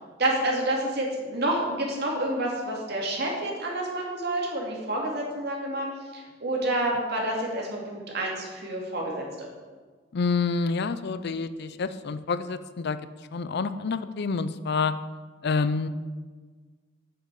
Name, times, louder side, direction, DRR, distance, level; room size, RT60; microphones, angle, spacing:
voice 1, 0.2-5.9 6.1-9.5, right 1 dB, 60° right, -2 dB, 2.6 m, -28 dB
voice 2, 10.1-13.0 13.3-14.9 15.4-15.9, left 4 dB, 60° left, 13 dB, 0.5 m, -28 dB
8.4 x 6.0 x 7.5 m, 1.4 s
head